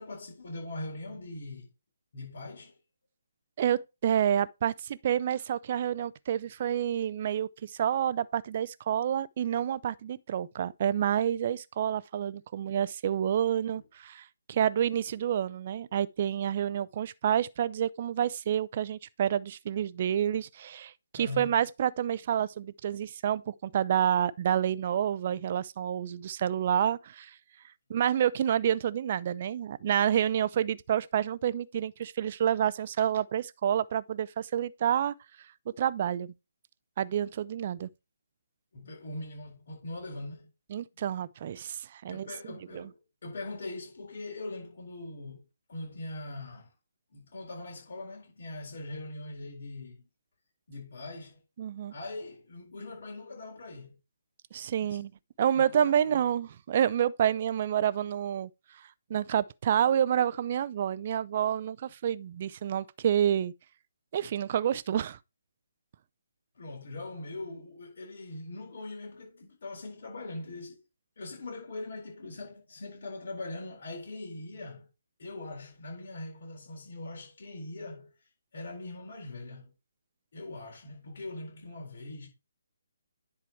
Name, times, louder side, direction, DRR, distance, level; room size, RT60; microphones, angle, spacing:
voice 1, 0.0-1.7 2.1-2.8 13.7-13.8 21.1-21.6 38.7-40.5 42.1-45.4 45.7-46.7 47.1-50.1 50.7-51.4 51.9-54.0 54.8-55.1 55.5-56.2 66.5-70.8 71.2-74.9 75.2-79.7 80.3-82.3, left 2 dB, 60° left, 4.2 m, -41 dB
voice 2, 3.6-27.3 27.9-35.1 35.8-36.3 37.0-37.9 40.7-42.3 42.7-42.9 51.6-51.9 54.5-55.1 55.4-58.5 59.1-63.5 64.1-65.2, right 9 dB, 40° right, 0.5 m, -28 dB
10.5 x 4.6 x 4.5 m
hypercardioid pair, 155°, 0 cm